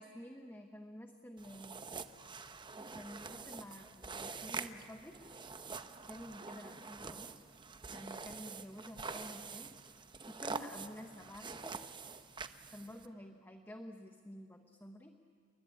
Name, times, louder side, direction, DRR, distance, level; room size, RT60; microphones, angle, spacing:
voice 1, 0.0-1.8 2.7-5.2 6.1-7.3 7.9-9.7 10.3-11.8 12.7-15.1, equal, 10° left, 5 dB, 1.0 m, -50 dB
sound 1, 1.4-13.1, right 4 dB, 25° right, 0.8 m, -46 dB
30.0 x 22.5 x 8.6 m, 2.2 s
head